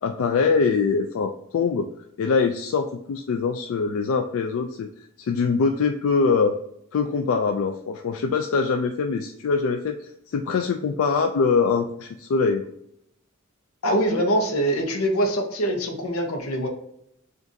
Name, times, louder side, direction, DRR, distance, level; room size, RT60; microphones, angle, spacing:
voice 1, 0.0-1.9 2.2-4.9 5.2-6.6 6.9-12.7, left 5 dB, 70° left, 5 dB, 0.3 m, -23 dB
voice 2, 13.8-16.7, right 1 dB, 85° left, 4 dB, 0.8 m, -23 dB
5.0 x 2.5 x 2.7 m, 0.76 s
head